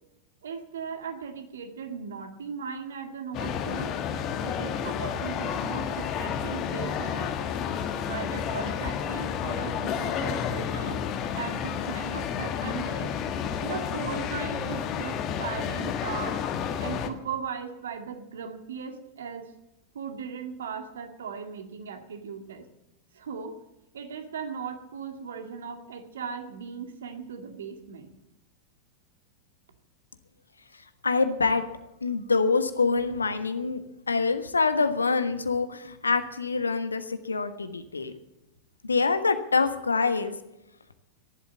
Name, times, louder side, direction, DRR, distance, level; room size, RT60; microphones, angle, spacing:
voice 1, 0.4-3.9 4.4-7.3 8.1-11.1 11.3-13.1 13.6-16.4 16.8-19.5 19.9-22.7 23.1-23.6 23.9-28.1, right 6 dB, 65° right, 5 dB, 2.0 m, -38 dB
sound 1, 3.3-17.1, left 8 dB, 35° left, 1.5 m, -31 dB
voice 2, 31.0-31.6 32.0-38.1 38.8-40.3, left 4 dB, 75° left, 9 dB, 1.3 m, -25 dB
15.0 x 11.5 x 7.2 m, 0.90 s
figure-of-eight pair, 90°, 0 cm